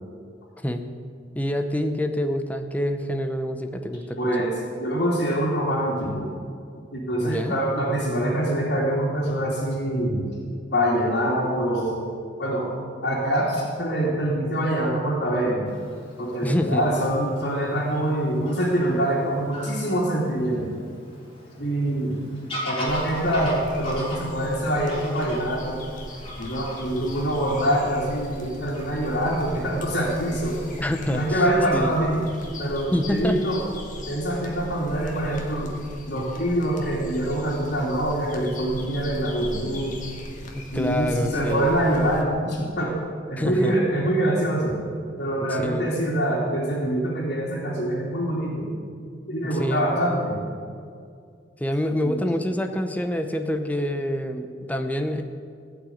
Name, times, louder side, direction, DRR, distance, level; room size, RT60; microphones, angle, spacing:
voice 1, 1.3-4.3 7.2-7.6 16.4-16.8 30.8-31.4 31.7-32.0 32.9-33.4 40.5-41.7 43.4-43.8 45.5-45.9 49.4-49.9 51.6-55.2, left 1 dB, 10° left, 6 dB, 0.8 m, -26 dB
voice 2, 4.2-4.5 4.8-6.3 6.9-10.3 10.7-12.0 12.4-12.6 13.0-15.7 16.2-20.7 21.6-22.2 22.6-25.8 26.4-30.6 31.1-32.2 32.6-33.6 34.1-35.8 36.1-40.0 40.7-42.9 43.3-44.7 45.2-48.7 49.3-50.4 52.0-52.2, right 1 dB, 60° left, -9 dB, 2.9 m, -24 dB
Fowl / Bird vocalization bird call bird song, 15.7-31.4, equal, 30° left, 3.6 m, -40 dB
sound 1, 22.9-42.2, left 1 dB, 45° left, 1.7 m, -39 dB
15.5 x 6.1 x 9.1 m, 2.3 s
head